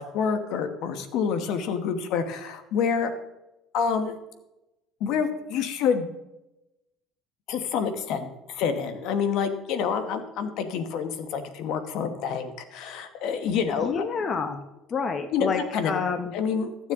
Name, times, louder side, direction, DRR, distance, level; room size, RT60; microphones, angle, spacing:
voice 1, 0.0-3.1 3.7-4.2 5.0-6.1 7.5-14.1 15.3-15.9 16.3-16.9, left 6 dB, 65° left, 9 dB, 1.0 m, -27 dB
voice 2, 13.8-14.6 14.9-16.3, left 5 dB, 35° left, 7 dB, 0.7 m, -28 dB
14.0 x 7.3 x 3.6 m, 0.97 s
cardioid pair, 120°, 0 cm